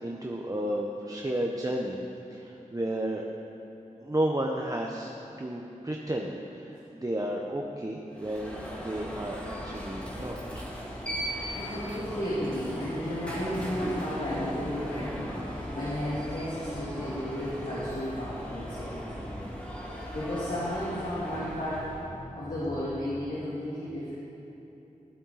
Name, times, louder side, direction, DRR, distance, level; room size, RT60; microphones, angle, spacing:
voice 1, 0.0-2.0 2.3-3.3 4.0-5.1 5.4-10.7, right 1 dB, 25° right, 0 dB, 0.7 m, -32 dB
Alarm, 8.1-22.1, equal, 10° left, 2.0 m, -38 dB
voice 2, 11.3-19.5 19.8-21.9 22.3-24.1, equal, 75° left, -10 dB, 2.1 m, -34 dB
sound 1, 18.4-23.3, left 1 dB, 65° right, 2.0 m, -49 dB
12.0 x 8.2 x 4.0 m, 3.0 s
wide cardioid pair, 45°, 14 cm